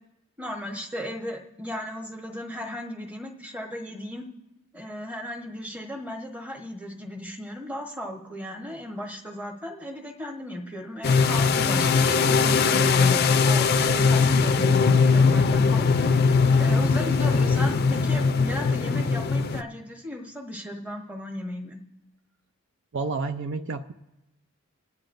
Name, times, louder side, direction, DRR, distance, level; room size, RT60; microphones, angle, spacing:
voice 1, 0.4-4.3 4.7-16.1 16.6-21.8, left 1 dB, 5° right, 2 dB, 1.1 m, -36 dB
sound 1, 11.0-19.6, left 4 dB, 45° left, 0.4 m, -20 dB
voice 2, 22.9-23.9, right 4 dB, 55° right, 9 dB, 0.4 m, -30 dB
27.5 x 9.6 x 2.6 m, 0.97 s
head